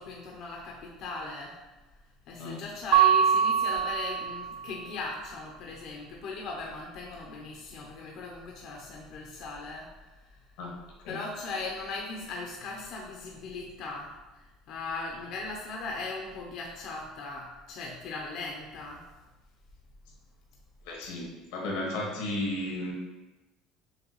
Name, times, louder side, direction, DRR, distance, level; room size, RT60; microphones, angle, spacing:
voice 1, 0.0-1.6 2.3-10.4 11.1-19.1, left 3 dB, 55° left, -1 dB, 0.6 m, -38 dB
Mallet percussion, 2.9-4.7, right 8 dB, 75° right, 0.4 m, -23 dB
voice 2, 20.8-22.9, left 1 dB, 90° left, -2 dB, 1.2 m, -34 dB
6.4 x 2.3 x 3.0 m, 1.1 s
cardioid pair, 140°, 0 cm